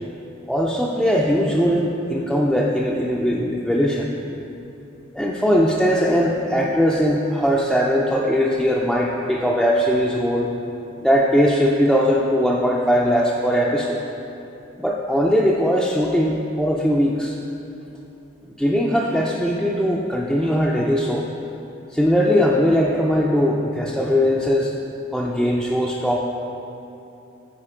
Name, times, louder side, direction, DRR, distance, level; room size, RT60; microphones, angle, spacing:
voice 1, 0.5-4.1 5.1-10.5 11.0-14.0 14.8-17.4 18.6-21.3 21.9-24.7 25.1-26.2, equal, ahead, -4 dB, 0.4 m, -20 dB
9.7 x 4.4 x 4.4 m, 2.9 s
head